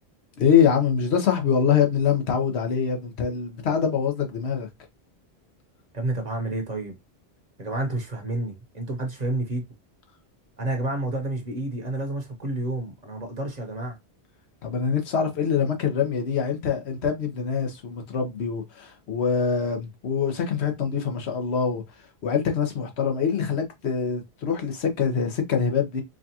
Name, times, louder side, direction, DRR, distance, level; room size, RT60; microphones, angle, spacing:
voice 1, 0.4-4.7 14.6-21.8 22.2-26.0, left 7 dB, 90° left, 1.2 m, -24 dB
voice 2, 5.9-7.0 7.6-9.6 10.6-14.0, right 2 dB, 40° right, 1.0 m, -29 dB
4.9 x 2.4 x 2.8 m
omnidirectional pair, 1.1 m